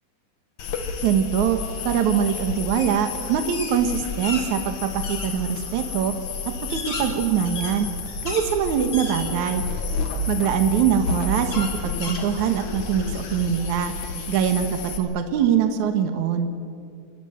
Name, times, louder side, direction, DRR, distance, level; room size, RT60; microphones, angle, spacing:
sound 1, 0.6-15.0, left 4 dB, 55° left, 2.9 m, -31 dB
voice 1, 1.0-1.6 1.8-6.1 6.7-7.9 8.2-9.6 10.3-13.9 14.3-16.5, right 8 dB, 60° right, 6 dB, 2.4 m, -23 dB
sound 2, 2.8-3.0 3.3-4.5 5.0-5.3 5.9-6.0 6.5-8.5 8.9-9.6 10.2-10.3 11.5-12.7, left 3 dB, 40° left, 4.0 m, -34 dB
25.0 x 21.0 x 8.0 m, 2.3 s
omnidirectional pair, 4.4 m